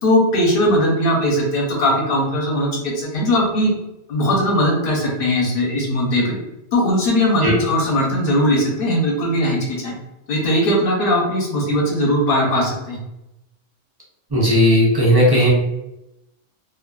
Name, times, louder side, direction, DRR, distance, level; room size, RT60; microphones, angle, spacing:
voice 1, 0.0-3.7 4.1-6.3 6.7-9.9 10.3-13.0, equal, 55° left, -2 dB, 0.9 m, -19 dB
voice 2, 14.3-15.5, equal, 40° right, -6 dB, 0.3 m, -15 dB
2.5 x 2.3 x 2.2 m, 0.90 s
omnidirectional pair, 1.3 m